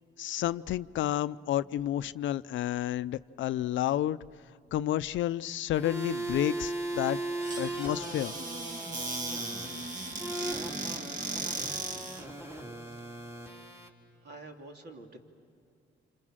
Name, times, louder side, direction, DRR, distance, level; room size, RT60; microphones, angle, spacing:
voice 1, 0.2-4.2 4.7-7.2 7.6-8.3, left 12 dB, 75° left, 15 dB, 0.6 m, -30 dB
sound 1, 5.7-13.9, right 2 dB, 15° right, 3.8 m, -38 dB
Squeak / Cupboard open or close, 7.4-12.3, right 2 dB, 40° right, 2.1 m, -37 dB
voice 2, 14.2-15.2, right 2 dB, 55° right, 2 dB, 3.3 m, -49 dB
28.5 x 26.5 x 7.5 m, 2.5 s
cardioid pair, 90°, 20 cm